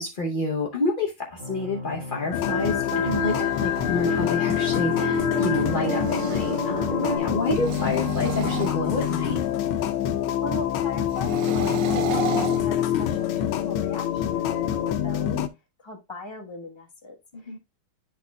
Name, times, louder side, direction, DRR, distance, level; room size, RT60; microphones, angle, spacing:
voice 1, 0.0-9.4 17.3-17.6, left 2 dB, 65° left, 0.5 m, -29 dB
sound 1, 1.4-7.2, right 2 dB, 35° right, 0.8 m, -32 dB
sound 2, 2.3-15.5, left 11 dB, 80° left, 1.4 m, -25 dB
sound 3, 3.0-6.7 7.5-9.5 11.1-13.4, right 8 dB, 80° right, 0.7 m, -35 dB
voice 2, 10.4-15.4 15.8-17.1, left 2 dB, 20° left, 0.8 m, -38 dB
10.5 x 4.2 x 2.2 m
omnidirectional pair, 2.3 m